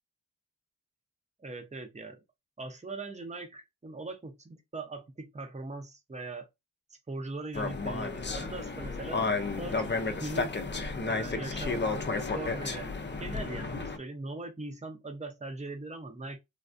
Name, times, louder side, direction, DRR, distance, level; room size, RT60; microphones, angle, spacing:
voice 1, 1.4-2.2 2.6-6.5 6.9-9.3 9.6-9.9 10.2-10.5 11.0-11.8 12.2-16.4, right 2 dB, 20° right, 0.7 m, -40 dB
sound 1, 7.5-14.0, left 3 dB, 35° left, 0.5 m, -32 dB
3.4 x 2.2 x 2.5 m
wide cardioid pair, 65°, 32 cm